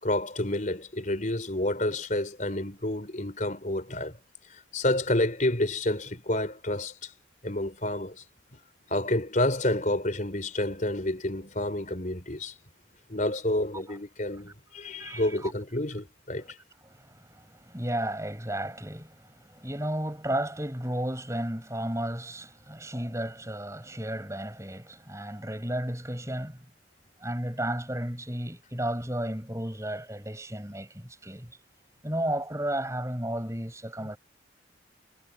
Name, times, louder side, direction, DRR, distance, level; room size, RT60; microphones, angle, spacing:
voice 1, 0.0-4.1 4.5-7.1 7.4-8.2 8.9-12.5 13.1-16.6, left 1 dB, 40° left, 4.1 m, -29 dB
voice 2, 15.0-15.5 16.8-26.6 27.2-31.6 32.0-34.2, right 1 dB, 15° right, 6.6 m, -33 dB
head